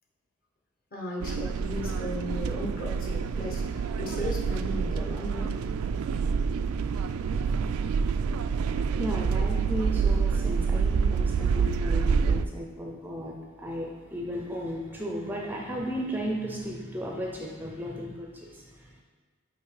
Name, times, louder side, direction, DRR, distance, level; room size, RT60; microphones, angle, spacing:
voice 1, 0.9-5.6, left 1 dB, 45° left, -1 dB, 1.2 m, -36 dB
sound 1, 1.2-12.4, right 5 dB, 85° right, 0.3 m, -27 dB
voice 2, 9.0-19.0, equal, 10° right, -1 dB, 0.5 m, -35 dB
8.2 x 3.1 x 4.8 m, 1.5 s
head